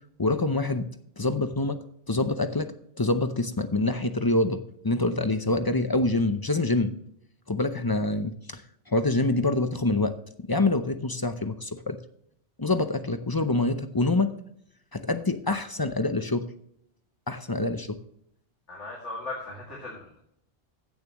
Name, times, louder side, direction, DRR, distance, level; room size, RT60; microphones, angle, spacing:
voice 1, 0.2-0.8 1.2-1.8 2.1-4.6 4.8-6.9 7.5-8.6 8.9-10.1 10.5-12.0 12.6-14.3 14.9-16.4 17.3-18.0, left 2 dB, 25° left, 9 dB, 0.5 m, -26 dB
voice 2, 18.7-20.2, left 2 dB, 85° left, -3 dB, 2.8 m, -38 dB
15.5 x 7.0 x 3.0 m, 0.70 s
omnidirectional pair, 1.2 m